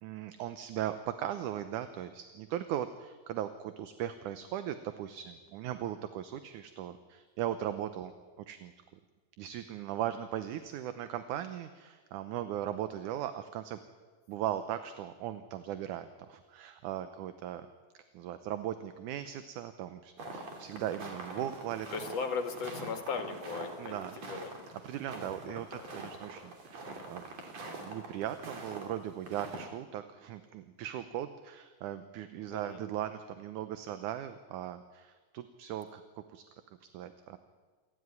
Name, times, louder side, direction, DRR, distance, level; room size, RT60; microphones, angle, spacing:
voice 1, 0.0-8.1 8.4-8.7 9.4-13.8 14.3-17.7 18.1-21.9 23.8-24.2 24.8-36.4 36.9-37.4, right 11 dB, 75° right, 10 dB, 2.3 m, -38 dB
sound 1, 20.2-28.9 29.2-29.7, right 2 dB, 55° right, 4.0 m, -44 dB
voice 2, 21.9-24.5 25.5-25.9 32.5-32.8, left 5 dB, 50° left, 6 dB, 2.9 m, -38 dB
28.0 x 13.0 x 9.7 m, 1.4 s
omnidirectional pair, 3.8 m